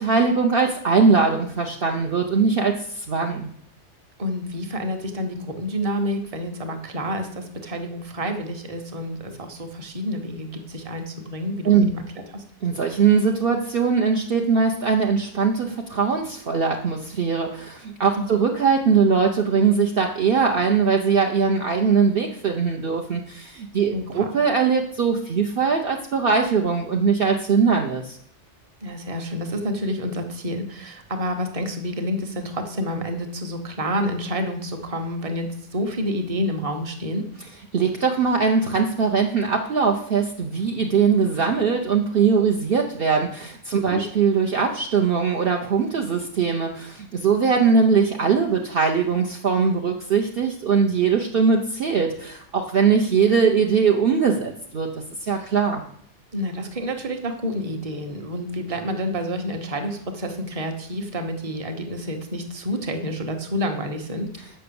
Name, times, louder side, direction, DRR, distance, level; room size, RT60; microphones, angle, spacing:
voice 1, 0.0-3.5 11.6-11.9 12.6-28.2 37.7-55.8, right 5 dB, 55° right, 2 dB, 0.9 m, -21 dB
voice 2, 4.2-12.0 12.3-12.4 18.2-18.3 23.9-24.3 28.8-37.3 43.9-44.0 56.3-64.3, equal, 30° right, 5 dB, 1.1 m, -29 dB
7.6 x 5.7 x 6.9 m, 0.65 s
omnidirectional pair, 1.2 m